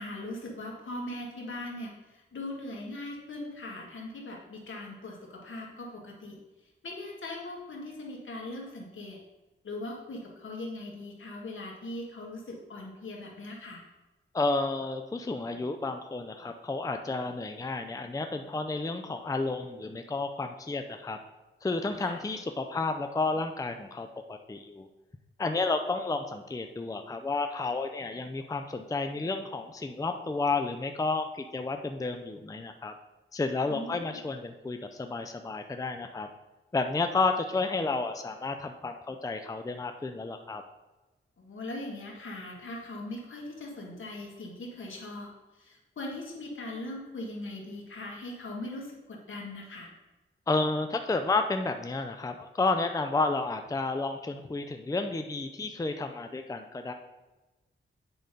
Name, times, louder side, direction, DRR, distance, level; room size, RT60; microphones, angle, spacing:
voice 1, 0.0-6.4 6.8-9.2 9.6-13.8 22.0-22.2 33.7-34.2 41.4-45.3 45.6-49.9, left 2 dB, 70° left, -1 dB, 2.0 m, -40 dB
voice 2, 14.3-21.2 21.6-24.9 25.4-32.9 33.3-36.3 36.7-40.6 50.5-56.9, left 3 dB, 15° left, 6 dB, 0.5 m, -31 dB
8.9 x 3.9 x 5.3 m, 1.1 s
wide cardioid pair, 90°, 21 cm